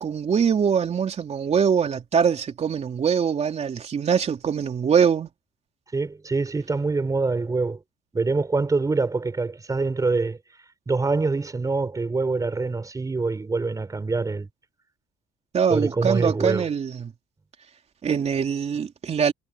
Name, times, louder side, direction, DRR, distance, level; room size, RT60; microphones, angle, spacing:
voice 1, 0.0-5.3 15.5-17.1 18.0-19.3, right 7 dB, 40° right, 3.4 m, -23 dB
voice 2, 5.9-7.8 8.1-10.4 10.9-14.5 15.7-16.7, right 3 dB, 20° right, 4.0 m, -25 dB
cardioid pair, 110°, 17 cm